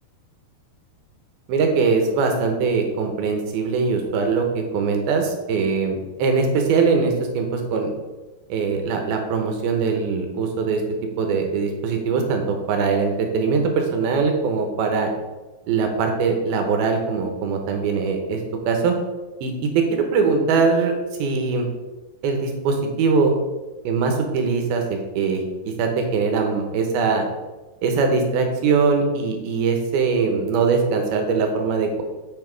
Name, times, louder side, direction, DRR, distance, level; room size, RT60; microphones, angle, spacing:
voice 1, 1.5-7.9 8.5-10.8 11.2-15.1 15.7-18.4 18.7-18.9 19.4-19.7 20.1-21.7 22.2-23.3 23.8-25.4 25.8-27.2 27.8-32.0, right 5 dB, 75° right, 4 dB, 2.7 m, -21 dB
7.5 x 5.8 x 4.7 m, 1.2 s
omnidirectional pair, 4.8 m